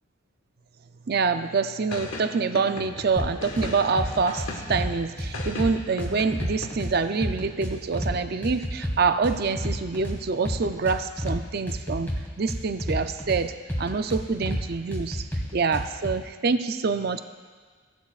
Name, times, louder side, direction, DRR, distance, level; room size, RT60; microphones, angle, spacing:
voice 1, 1.1-15.2 15.5-17.2, right 4 dB, 45° right, 10 dB, 0.5 m, -26 dB
sound 1, 1.9-4.9 5.3-6.7, left 2 dB, 75° left, 1.5 m, -37 dB
sound 2, 3.2-3.7 4.0-4.9 5.2-6.9 7.2-8.1 8.4-10.2 10.4-11.4 11.7-13.4 13.7-14.6 14.9-16.1, equal, 10° left, 1.8 m, -29 dB
17.0 x 12.5 x 2.4 m, 1.5 s
head